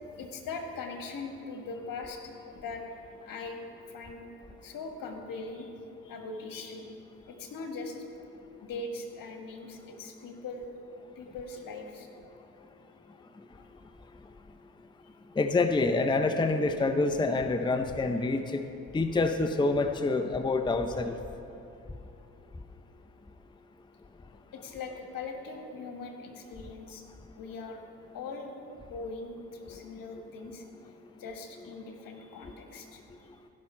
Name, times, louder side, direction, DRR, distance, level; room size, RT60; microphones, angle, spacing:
voice 1, 0.2-2.8 3.2-3.6 3.9-4.2 4.6-5.7 6.0-6.9 7.2-8.0 8.6-10.7 11.2-12.1 13.5-13.7 24.5-27.0 27.3-27.8 28.1-28.5 28.9-30.6 31.2-33.3, left 3 dB, 70° left, 3 dB, 1.5 m, -41 dB
voice 2, 15.4-18.6 18.9-21.1, left 3 dB, 15° left, 8 dB, 0.6 m, -27 dB
16.0 x 5.8 x 4.3 m, 2.7 s
supercardioid pair, 55°, 34 cm